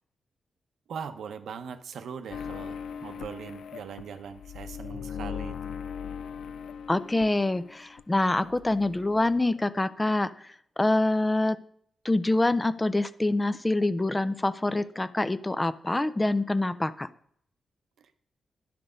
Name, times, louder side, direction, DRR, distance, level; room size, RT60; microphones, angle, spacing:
voice 1, 0.9-5.6 18.0-18.1, right 7 dB, 80° right, 9 dB, 0.8 m, -40 dB
sound 1, 2.3-8.0 8.3-9.5, left 7 dB, 85° left, 0.4 m, -39 dB
voice 2, 6.9-10.5 10.8-11.6 12.0-17.1, left 2 dB, 15° left, 14 dB, 0.4 m, -26 dB
10.5 x 6.0 x 5.1 m, 0.65 s
wide cardioid pair, 120°, 0 cm